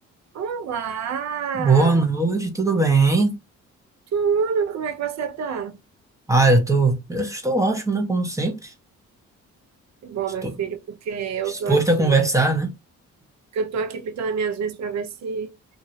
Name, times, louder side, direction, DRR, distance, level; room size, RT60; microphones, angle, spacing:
voice 1, 0.3-2.0 4.1-5.8 10.0-12.2 13.5-15.5, right 6 dB, 65° right, 0.8 m, -27 dB
voice 2, 1.6-3.4 6.3-8.7 10.4-10.5 11.5-12.7, right 3 dB, 10° right, 1.0 m, -20 dB
2.9 x 2.6 x 2.8 m
cardioid pair, 90°, 30 cm